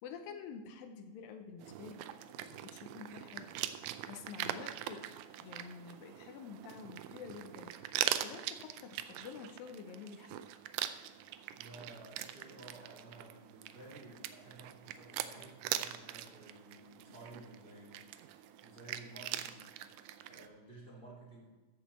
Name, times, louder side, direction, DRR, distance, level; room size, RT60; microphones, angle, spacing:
voice 1, 0.0-10.4, left 6 dB, 85° left, 6 dB, 2.6 m, -49 dB
sound 1, 1.6-20.5, right 12 dB, 80° right, 1.9 m, -42 dB
voice 2, 11.5-19.8 20.3-21.4, right 2 dB, 15° right, -4 dB, 2.5 m, -54 dB
13.5 x 7.2 x 4.3 m, 1.2 s
omnidirectional pair, 4.1 m